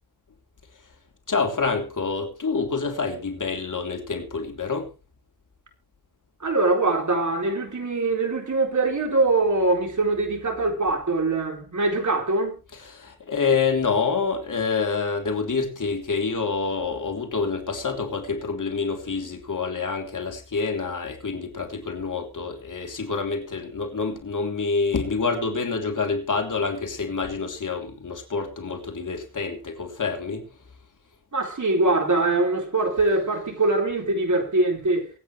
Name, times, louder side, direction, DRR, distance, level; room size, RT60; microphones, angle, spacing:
voice 1, 1.3-4.9 12.7-30.6, left 4 dB, 55° left, 3.3 m, -27 dB
voice 2, 6.4-12.6 31.3-35.1, right 2 dB, 50° right, 4.2 m, -23 dB
24.0 x 9.1 x 3.2 m
cardioid pair, 75°, 37 cm